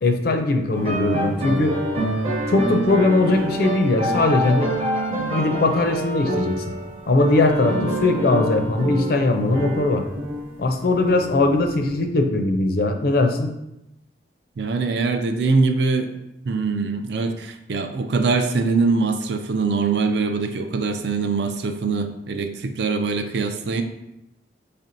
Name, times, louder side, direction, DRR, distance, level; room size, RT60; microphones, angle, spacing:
voice 1, 0.0-1.8 2.5-4.7 5.1-6.5 7.1-10.0 10.6-13.5, left 2 dB, 55° left, 5 dB, 0.4 m, -20 dB
sound 1, 0.7-12.0, right 1 dB, 30° right, 0.7 m, -27 dB
voice 2, 14.6-16.1 16.5-23.8, right 4 dB, 65° right, 7 dB, 0.4 m, -23 dB
4.2 x 3.4 x 2.6 m, 0.88 s
head